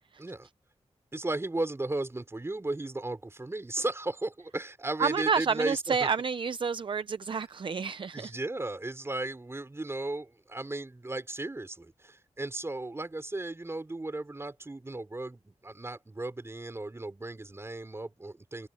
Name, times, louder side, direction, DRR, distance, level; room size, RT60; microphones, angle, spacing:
voice 1, 1.1-6.1 8.1-18.7, right 2 dB, 25° right, 4.9 m, -35 dB
voice 2, 5.0-8.3, right 6 dB, 50° right, 0.6 m, -29 dB
wide cardioid pair, 95°, 11 cm